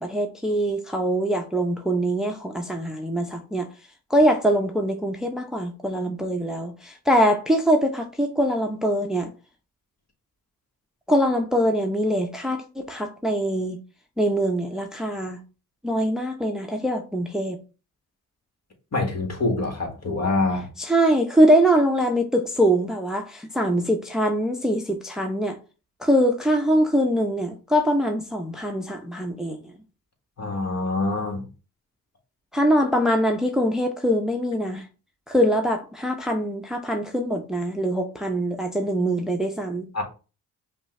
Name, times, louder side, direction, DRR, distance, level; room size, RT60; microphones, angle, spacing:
voice 1, 0.0-3.7 4.1-9.3 11.1-13.8 14.2-15.4 15.8-17.6 20.8-25.6 26.0-29.6 32.5-34.9 35.3-39.9, equal, ahead, 0.7 m, -23 dB
voice 2, 18.9-20.7 30.4-31.5 39.9-40.0, left 2 dB, 45° left, 1.6 m, -25 dB
5.3 x 2.5 x 3.2 m
supercardioid pair, 50°, 36 cm